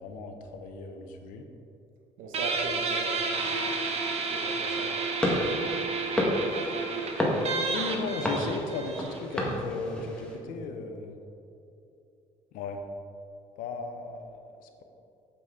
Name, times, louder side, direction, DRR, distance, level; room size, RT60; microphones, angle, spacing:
voice 1, 0.0-1.5 7.2-11.2 12.5-12.8 13.6-14.3 14.6-14.8, left 3 dB, 90° left, 5 dB, 0.8 m, -36 dB
voice 2, 2.2-3.8 4.3-5.0, right 3 dB, 85° right, 2 dB, 0.9 m, -38 dB
Guitar, 2.3-9.5, right 4 dB, 50° right, 1.1 m, -31 dB
sound 1, 5.2-10.4, left 1 dB, 5° left, 1.5 m, -31 dB
7.9 x 7.1 x 3.7 m, 2.7 s
cardioid pair, 115°, 14 cm